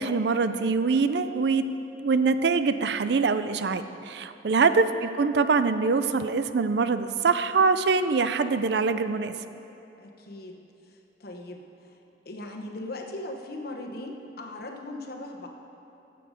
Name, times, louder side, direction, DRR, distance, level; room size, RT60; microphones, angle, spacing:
voice 1, 0.0-1.7 2.0-9.4, right 4 dB, 65° right, 11 dB, 0.4 m, -24 dB
voice 2, 4.6-4.9 10.0-10.6 10.8-12.0 12.2-15.5, left 1 dB, 60° left, 2 dB, 1.1 m, -39 dB
16.0 x 6.9 x 5.1 m, 3.0 s
head